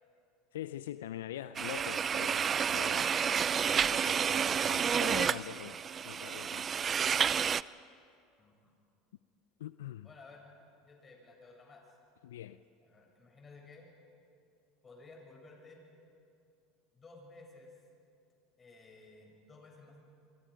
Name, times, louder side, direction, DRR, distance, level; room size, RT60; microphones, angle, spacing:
voice 1, 0.5-3.1 3.7-5.8 6.0-6.7 9.6-10.1 12.2-12.6, left 12 dB, 80° left, 14 dB, 0.5 m, -43 dB
sound 1, 1.5-7.6, right 7 dB, 35° right, 0.4 m, -30 dB
voice 2, 8.4-8.7 10.0-10.5 10.8-11.9 12.8-13.9 14.8-15.8 16.9-17.7 18.6-20.0, left 3 dB, 30° left, 0 dB, 7.5 m, -55 dB
29.0 x 24.5 x 5.2 m, 2.5 s
hypercardioid pair, 85°, 0 cm